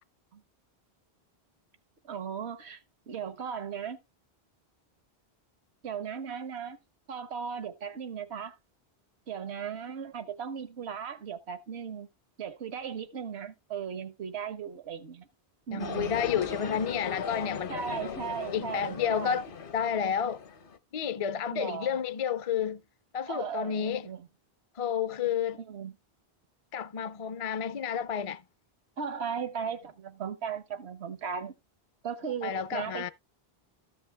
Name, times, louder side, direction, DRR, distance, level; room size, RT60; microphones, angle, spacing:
voice 1, 2.0-2.8 3.1-4.0 5.8-6.8 7.1-8.6 9.3-12.1 12.4-15.3 15.7-16.1 17.7-19.4 21.5-22.0 23.3-24.3 25.7-25.9 29.0-31.5 32.0-33.1, right 7 dB, 85° right, 1.2 m, -37 dB
voice 2, 15.7-17.8 18.5-19.5 19.7-20.4 20.9-22.8 23.1-24.1 24.8-25.6 26.7-28.4 32.4-33.1, left 8 dB, 45° left, 0.5 m, -30 dB
sound 1, 15.8-20.8, left 6 dB, 60° left, 1.0 m, -38 dB
13.5 x 5.5 x 3.3 m
omnidirectional pair, 1.1 m